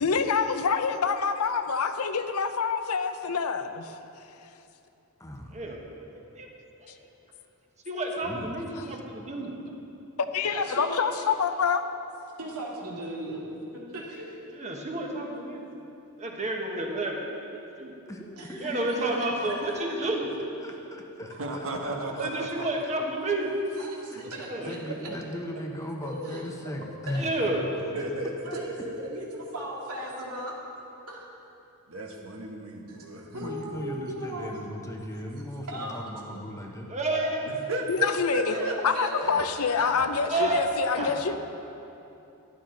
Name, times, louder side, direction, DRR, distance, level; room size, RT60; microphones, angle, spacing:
voice 1, 0.0-3.9 10.3-11.8 37.9-38.5 38.8-41.4, left 5 dB, 70° left, 9 dB, 0.6 m, -26 dB
voice 2, 5.2-5.6 8.2-8.5 18.1-19.2 19.4-19.5 20.0-20.1 20.6-22.2 22.8-22.9 23.8-27.3 33.4-36.9 39.2-39.4 39.8-40.0 40.3-40.6 41.0-41.4, left 1 dB, 15° left, 1 dB, 0.9 m, -38 dB
voice 3, 7.8-9.5 14.5-15.6 16.2-17.1 17.4-17.9 18.6-20.3 22.2-23.5 24.4-24.7 27.2-27.7 36.9-37.4 40.2-40.6 41.0-41.1, right 2 dB, 30° right, 0 dB, 1.4 m, -30 dB
voice 4, 10.5-11.1 12.4-13.5 13.9-14.4 18.4-19.6 19.9-20.0 23.8-24.5 26.0-26.4 27.1-27.2 28.5-30.5 31.1-31.3 32.9-33.0 33.3-34.5 35.7-36.0 38.4-39.1, right 1 dB, 90° right, -3 dB, 2.2 m, -37 dB
voice 5, 21.3-22.7 24.1-24.5 27.9-28.9 31.9-33.8 37.4-38.8 39.2-40.1, right 1 dB, 65° right, 1 dB, 1.4 m, -34 dB
13.5 x 11.0 x 3.9 m, 2.9 s
head